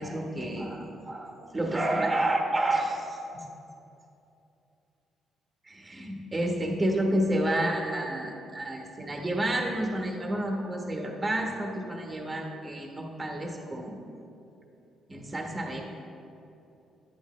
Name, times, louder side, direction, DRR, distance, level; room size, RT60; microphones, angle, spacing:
voice 1, 0.0-3.5 5.6-14.0 15.1-15.8, right 1 dB, 25° right, 1 dB, 1.1 m, -30 dB
10.5 x 9.1 x 3.1 m, 2.8 s
cardioid pair, 90°, 0 cm